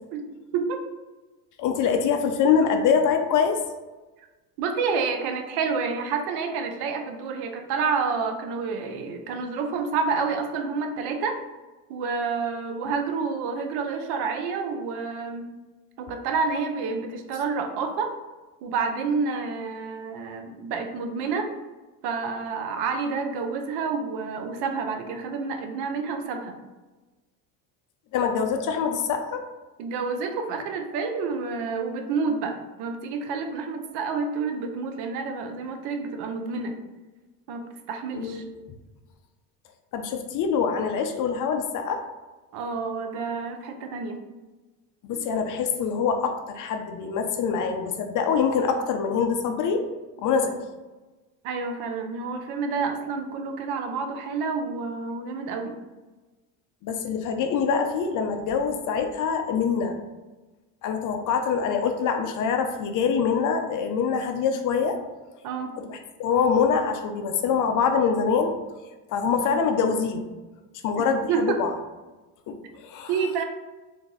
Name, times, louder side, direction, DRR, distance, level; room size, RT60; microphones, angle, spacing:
voice 1, 1.6-3.6 28.1-29.4 38.1-38.6 39.9-42.0 45.0-49.9 50.2-50.6 56.8-59.9 60.8-65.0 65.8-68.5 69.1-70.2 70.8-71.7 72.5-73.1, left 6 dB, 45° left, 6 dB, 0.5 m, -24 dB
voice 2, 4.6-11.4 11.9-15.4 16.0-18.1 18.6-21.5 22.0-26.6 29.8-36.7 37.5-37.6 37.9-38.4 42.5-44.2 45.1-45.2 51.4-55.7 65.4-65.7 71.3-71.6 73.1-73.4, right 5 dB, 65° right, 5 dB, 0.6 m, -29 dB
2.6 x 2.3 x 3.9 m, 1.2 s
supercardioid pair, 95°, 43 cm